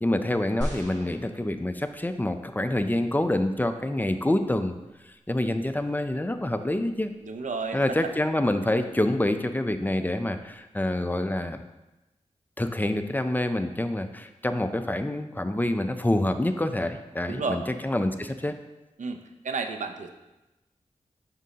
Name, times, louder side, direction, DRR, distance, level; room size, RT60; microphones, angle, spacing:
voice 1, 0.0-4.8 5.1-7.1 7.7-11.6 12.6-18.5, left 1 dB, 15° left, 8 dB, 0.5 m, -27 dB
sound 1, 0.6-2.1 2.9-3.0, equal, 30° right, 2.5 m, -36 dB
voice 2, 7.2-8.1 17.3-17.6 19.0-19.2 19.4-20.1, right 4 dB, 80° right, 6 dB, 0.6 m, -31 dB
7.3 x 6.2 x 2.8 m, 1.0 s
wide cardioid pair, 65°, 13 cm